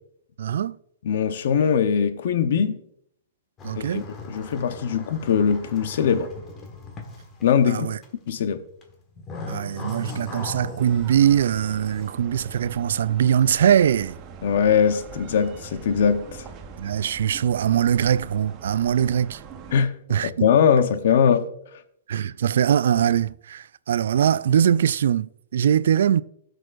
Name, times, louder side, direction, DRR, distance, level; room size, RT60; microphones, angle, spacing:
voice 1, 0.4-0.8 3.6-4.1 7.7-8.0 9.5-14.2 16.8-19.4 20.1-20.3 22.1-26.2, right 9 dB, 75° right, 0.3 m, -22 dB
voice 2, 1.0-2.8 3.8-6.3 7.4-7.9 8.3-8.6 14.4-16.3 19.7-21.5, left 7 dB, 65° left, 0.8 m, -21 dB
sound 1, 3.6-7.8 8.0-8.5 8.8-12.1, left 2 dB, 25° left, 1.6 m, -38 dB
sound 2, 10.8-19.8, right 6 dB, 35° right, 1.0 m, -42 dB
15.5 x 6.4 x 2.5 m
hypercardioid pair, 135°, 0 cm